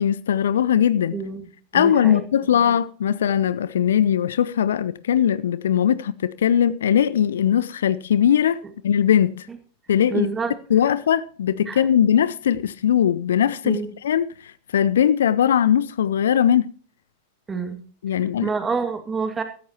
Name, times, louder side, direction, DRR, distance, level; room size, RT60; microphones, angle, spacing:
voice 1, 0.0-1.2 1.7-9.5 9.9-10.3 10.7-16.7 18.0-18.5, left 9 dB, 65° left, 0.5 m, -20 dB
voice 2, 1.1-1.5 1.7-2.2 2.5-2.8 10.1-10.5 11.7-11.8 13.6-13.9 17.5-17.8 18.4-19.4, right 5 dB, 15° right, 2.0 m, -27 dB
15.5 x 14.0 x 2.9 m
figure-of-eight pair, 90°, 0 cm